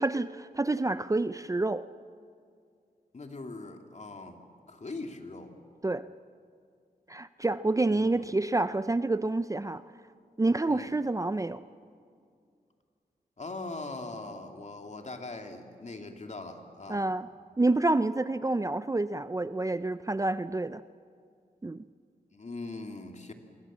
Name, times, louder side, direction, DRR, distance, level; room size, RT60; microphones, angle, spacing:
voice 1, 0.0-1.9 5.8-6.1 7.1-9.8 10.4-11.6 16.9-17.3 17.6-20.8 21.6-21.8, right 2 dB, 20° right, 13 dB, 0.5 m, -28 dB
voice 2, 3.1-4.4 4.7-5.5 7.9-8.3 10.7-10.9 13.4-17.1 22.3-23.3, left 3 dB, 45° left, 4 dB, 2.6 m, -41 dB
27.5 x 22.5 x 7.4 m, 2.2 s
wide cardioid pair, 75°, 16 cm